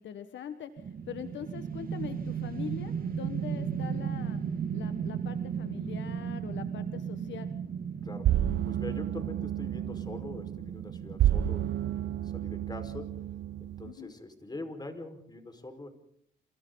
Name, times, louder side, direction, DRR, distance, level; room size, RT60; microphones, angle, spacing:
voice 1, 0.0-4.4 4.7-7.5 13.8-14.1, left 8 dB, 65° left, 9 dB, 1.6 m, -42 dB
sound 1, 0.8-13.0, right 7 dB, 45° right, 2.5 m, -36 dB
voice 2, 8.0-8.4 8.6-13.2 13.6-15.9, left 2 dB, 20° left, 7 dB, 5.1 m, -43 dB
sound 2, 8.2-13.9, right 12 dB, 65° right, 0.8 m, -31 dB
29.0 x 29.0 x 4.1 m, 0.65 s
cardioid pair, 90°, 20 cm